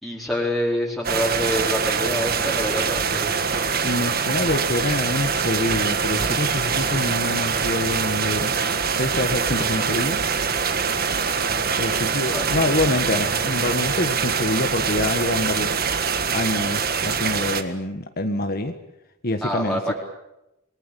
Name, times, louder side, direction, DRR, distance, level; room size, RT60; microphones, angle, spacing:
voice 1, 0.0-3.3 4.1-4.2 12.3-12.5 19.4-19.9, equal, ahead, -3 dB, 4.3 m, -26 dB
sound 1, 1.0-17.6, right 6 dB, 45° right, 1.7 m, -24 dB
voice 2, 3.8-8.5 8.9-10.2 11.8-15.7 16.3-18.7 19.2-19.8, left 2 dB, 50° left, 6 dB, 1.5 m, -26 dB
28.0 x 20.5 x 8.5 m, 0.92 s
head